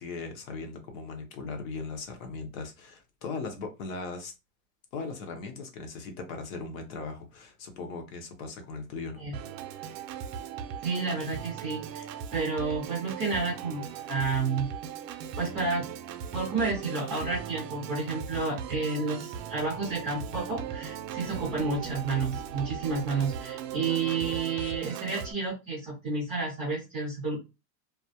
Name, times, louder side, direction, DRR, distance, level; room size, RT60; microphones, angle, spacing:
voice 1, 0.0-4.3 4.9-9.2, left 4 dB, 60° left, 0.8 m, -38 dB
Organ, 9.3-25.3, right 8 dB, 85° right, 0.6 m, -38 dB
voice 2, 10.8-14.7 15.4-15.9 16.3-27.4, right 4 dB, 10° right, 0.4 m, -31 dB
2.2 x 2.0 x 2.7 m
supercardioid pair, 175°, 48 cm